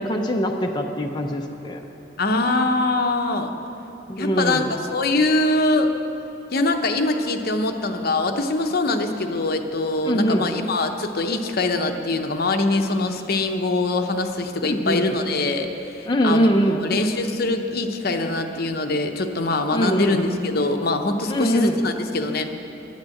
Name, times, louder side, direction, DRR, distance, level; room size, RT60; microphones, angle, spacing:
voice 1, 0.0-1.8 4.1-4.7 10.0-10.5 14.6-15.0 16.1-16.8 19.7-20.2 21.3-21.8, equal, 25° left, 1 dB, 0.6 m, -22 dB
voice 2, 2.2-3.5 4.2-4.6 4.9-5.9 6.5-22.5, left 2 dB, 55° left, 5 dB, 0.9 m, -23 dB
10.5 x 10.5 x 7.7 m, 2.9 s
head